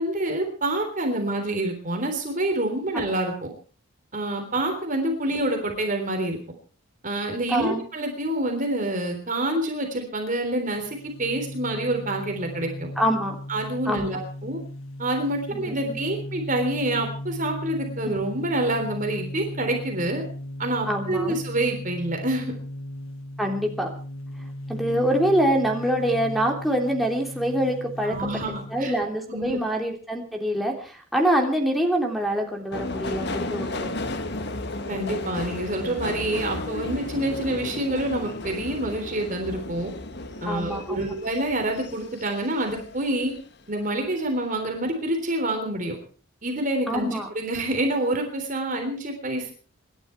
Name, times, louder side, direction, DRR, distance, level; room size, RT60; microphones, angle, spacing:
voice 1, 0.0-3.3 4.1-6.4 7.0-12.9 13.5-14.6 15.0-20.2 20.6-22.5 28.0-28.9 29.3-29.6 34.9-39.9 40.4-43.3 43.7-45.9 46.4-47.1 47.3-49.5, right 1 dB, 35° right, 4 dB, 3.5 m, -27 dB
voice 2, 7.5-7.8 13.0-13.4 13.8-14.2 15.6-16.0 20.9-21.4 23.4-23.9 24.7-28.2 28.5-33.9 40.4-41.1 46.9-47.3, right 1 dB, ahead, 0 dB, 3.2 m, -25 dB
sound 1, 10.7-29.0, left 1 dB, 70° left, 1.1 m, -37 dB
Subway metro underground, 32.7-43.4 43.8-44.5 44.8-44.9, left 2 dB, 50° left, 1.5 m, -34 dB
26.5 x 11.5 x 4.6 m, 0.41 s
head